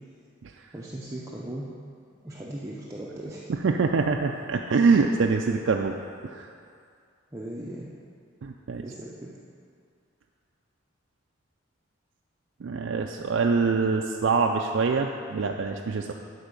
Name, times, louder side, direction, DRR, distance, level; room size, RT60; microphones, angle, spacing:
voice 1, 0.7-1.7 2.2-3.5 7.3-7.9 8.8-9.3, right 1 dB, 15° right, -5 dB, 0.6 m, -37 dB
voice 2, 3.6-6.0 6.2-6.5 8.4-8.9 12.6-16.1, right 4 dB, 65° right, 2 dB, 0.4 m, -24 dB
11.5 x 4.2 x 5.2 m, 2.3 s
head